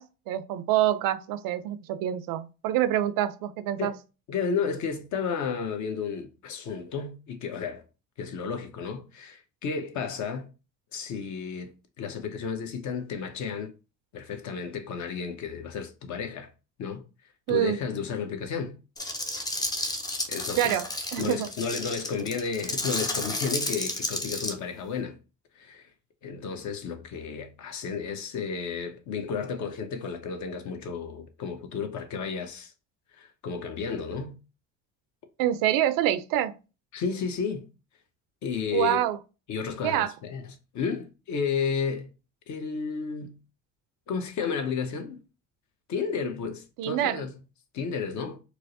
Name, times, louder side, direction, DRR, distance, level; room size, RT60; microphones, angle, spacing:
voice 1, 0.0-3.9 17.5-17.8 20.6-21.5 35.4-36.6 38.7-39.2 39.8-40.1 46.8-47.2, right 12 dB, 70° right, 0.5 m, -26 dB
voice 2, 4.3-7.8 8.2-10.5 10.9-13.7 14.1-16.5 16.8-17.0 17.5-18.8 20.3-20.8 21.2-25.2 25.6-25.8 26.2-32.7 33.1-34.4 36.9-37.7 38.4-39.0 39.5-42.1 42.5-43.3 44.1-45.2 45.9-47.3 47.7-48.4, left 6 dB, 55° left, 0.8 m, -32 dB
sound 1, 19.0-24.5, left 2 dB, 10° left, 0.4 m, -32 dB
4.6 x 2.0 x 2.6 m
cardioid pair, 120°, 35 cm